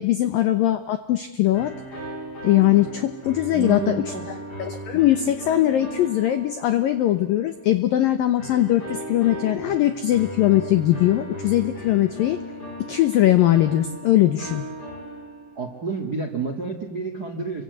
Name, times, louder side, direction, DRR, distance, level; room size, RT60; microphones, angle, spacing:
voice 1, 0.0-2.1 2.4-4.0 4.6-12.4 12.9-14.6, left 13 dB, 85° left, 11 dB, 2.0 m, -20 dB
sound 1, 1.5-7.3 8.4-15.8, equal, 20° left, 5.8 m, -37 dB
voice 2, 3.5-4.2 15.5-17.6, right 4 dB, 55° right, 6 dB, 1.0 m, -29 dB
29.5 x 24.5 x 8.1 m, 0.96 s
omnidirectional pair, 5.7 m